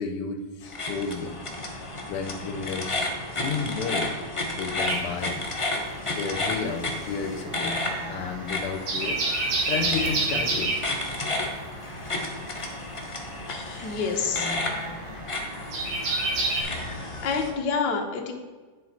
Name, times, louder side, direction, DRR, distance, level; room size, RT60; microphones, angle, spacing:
voice 1, 0.0-1.3 2.1-4.2 4.5-5.4 6.1-9.2 9.7-10.7 15.5-16.3 16.7-17.2, left 5 dB, 85° left, 5 dB, 1.7 m, -33 dB
sound 1, 0.6-17.5, left 2 dB, 35° left, 0.5 m, -32 dB
sound 2, 4.8-6.3 6.5-16.6, right 3 dB, 65° right, 2.0 m, -29 dB
voice 2, 13.5-14.5 17.2-18.3, left 5 dB, 60° left, 2 dB, 1.5 m, -28 dB
10.0 x 4.9 x 4.2 m, 1.4 s
omnidirectional pair, 2.4 m